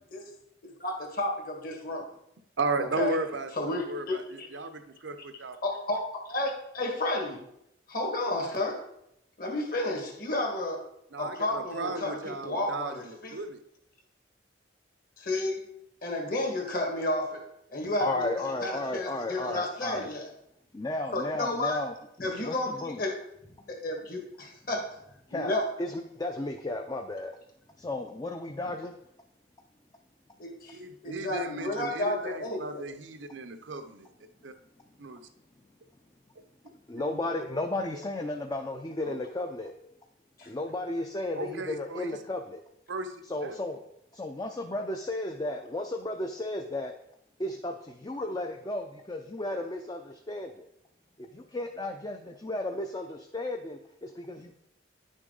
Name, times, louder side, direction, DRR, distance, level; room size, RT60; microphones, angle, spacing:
voice 1, 0.6-2.1 3.0-3.2 3.6-4.5 5.6-7.4 7.9-8.8 9.4-10.9 11.2-13.3 15.2-15.6 16.0-18.3 18.6-20.3 21.1-21.8 22.2-23.1 23.7-25.0 25.3-25.6 30.4-32.8 40.4-40.5, left 1 dB, 50° left, 2 dB, 1.9 m, -32 dB
voice 2, 2.6-5.6 11.1-13.6 30.7-34.1 34.4-34.5 35.0-35.3 37.1-37.2 39.0-39.2 41.3-42.1 42.9-43.6, right 2 dB, 85° right, 9 dB, 0.8 m, -35 dB
voice 3, 18.0-20.1 20.7-23.0 25.3-25.5 25.8-27.4 27.8-28.9 36.7-39.8 40.5-42.6 43.3-43.8 44.1-46.9 47.4-50.7 51.2-54.5, left 2 dB, 20° left, 4 dB, 0.5 m, -34 dB
9.8 x 6.3 x 3.9 m, 0.77 s
head